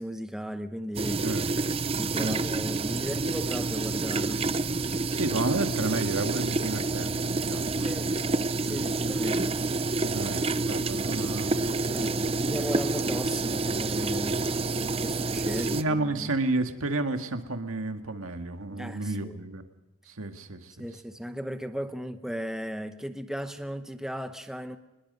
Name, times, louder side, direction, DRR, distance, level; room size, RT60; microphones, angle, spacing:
voice 1, 0.0-1.3 2.0-4.5 7.8-8.2 8.7-9.6 11.9-14.5 15.0-16.3 18.7-19.4 20.8-24.8, equal, ahead, 0.8 m, -36 dB
sound 1, 0.9-15.8, right 3 dB, 25° right, 0.6 m, -28 dB
voice 2, 2.2-2.6 5.1-7.9 8.7-9.1 9.8-12.2 15.7-19.7 20.0-20.9, right 2 dB, 75° right, 1.8 m, -32 dB
25.0 x 21.0 x 5.4 m
head